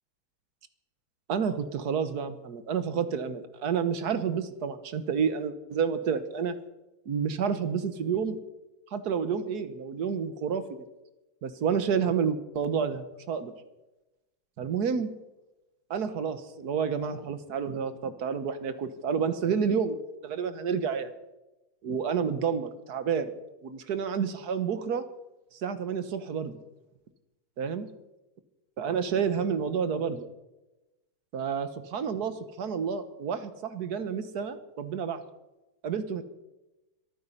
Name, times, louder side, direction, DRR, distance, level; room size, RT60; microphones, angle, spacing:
voice 1, 1.3-6.5 7.1-8.4 8.9-10.8 11.4-13.5 14.6-15.1 15.9-20.0 20.2-21.1 21.8-23.3 23.6-25.0 25.5-26.6 27.6-27.9 28.8-30.3 31.3-35.2 35.8-36.2, right 6 dB, 55° right, 11 dB, 1.5 m, -29 dB
25.0 x 9.4 x 5.6 m, 1.0 s
omnidirectional pair, 2.3 m